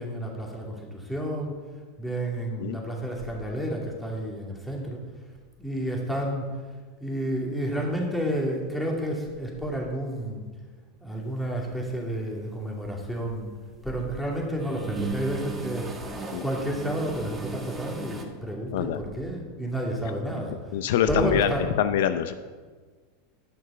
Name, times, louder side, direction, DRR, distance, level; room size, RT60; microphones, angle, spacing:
voice 1, 0.0-1.5 2.0-5.0 5.6-6.5 7.0-10.5 11.0-13.5 13.8-15.9 16.4-20.5 21.1-21.6, right 1 dB, 5° left, -2 dB, 2.6 m, -30 dB
sound 1, 11.8-12.1 12.6-13.9 14.3-18.2, right 3 dB, 15° right, 1.5 m, -36 dB
voice 2, 20.7-21.5 21.8-22.3, left 10 dB, 70° left, 11 dB, 0.5 m, -24 dB
10.5 x 5.9 x 5.5 m, 1.5 s
hypercardioid pair, 100°, 0 cm